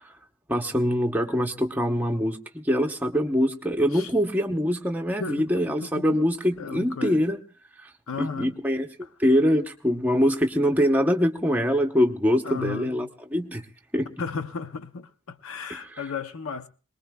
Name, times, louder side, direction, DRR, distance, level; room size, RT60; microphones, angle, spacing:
voice 1, 0.5-7.4 8.2-8.9 9.2-13.6 13.9-14.1 15.7-15.8, equal, 10° right, 0.8 m, -24 dB
voice 2, 3.9-4.3 5.2-6.2 6.6-7.2 8.1-8.5 9.0-9.1 12.4-13.0 14.2-16.7, left 5 dB, 75° left, 0.7 m, -35 dB
22.0 x 20.0 x 2.3 m
head